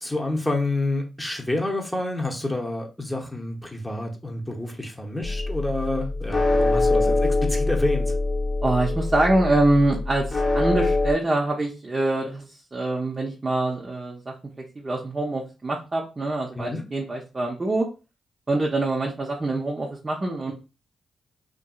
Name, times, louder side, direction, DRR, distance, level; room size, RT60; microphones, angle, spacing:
voice 1, 0.0-8.1 16.5-16.8, left 2 dB, 10° left, 0.9 m, -28 dB
sound 1, 5.2-11.1, left 2 dB, 40° left, 0.9 m, -24 dB
voice 2, 8.6-14.3 14.7-17.9 18.5-20.5, right 2 dB, 35° right, 0.7 m, -24 dB
2.7 x 2.7 x 2.3 m
supercardioid pair, 45°, 0 cm